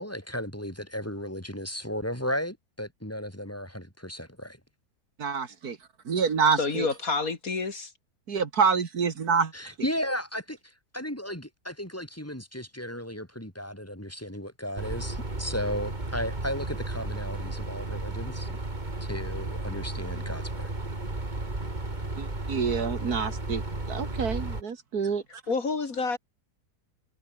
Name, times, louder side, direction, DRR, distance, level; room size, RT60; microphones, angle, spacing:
voice 1, 0.0-4.6 9.5-18.6 19.0-20.7, equal, 10° left, 4.5 m, -35 dB
voice 2, 5.2-5.8 6.1-6.9 8.3-9.7 22.2-23.6 23.9-25.2, right 6 dB, 65° right, 2.2 m, -27 dB
voice 3, 6.6-7.9 25.5-26.2, left 4 dB, 55° left, 2.7 m, -28 dB
sound 1, 14.8-24.6, right 2 dB, 25° right, 3.1 m, -34 dB
omnidirectional pair, 1.7 m